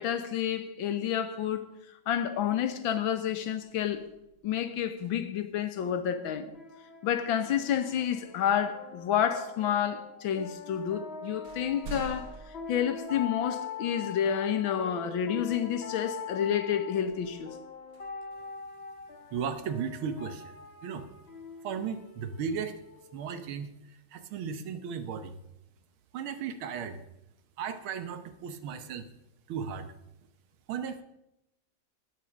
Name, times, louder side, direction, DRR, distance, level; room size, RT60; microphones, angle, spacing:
voice 1, 0.0-1.7 2.1-4.1 4.4-6.5 7.0-12.3 12.7-17.5, left 9 dB, 75° left, 1.7 m, -29 dB
sound 1, 2.9-3.1 3.5-5.6 7.7-7.9 8.7-9.5 10.3-10.4 10.8-13.7 14.2-14.3 16.9-19.1, right 3 dB, 50° right, 1.5 m, -49 dB
sound 2, 6.0-23.4, left 5 dB, 35° left, 1.4 m, -43 dB
voice 2, 19.3-20.5 20.8-21.1 21.6-22.7 23.1-25.4 26.1-27.0 27.6-29.1 29.5-29.9 30.7-31.0, right 6 dB, 85° right, 1.9 m, -35 dB
13.5 x 9.8 x 5.1 m
omnidirectional pair, 2.2 m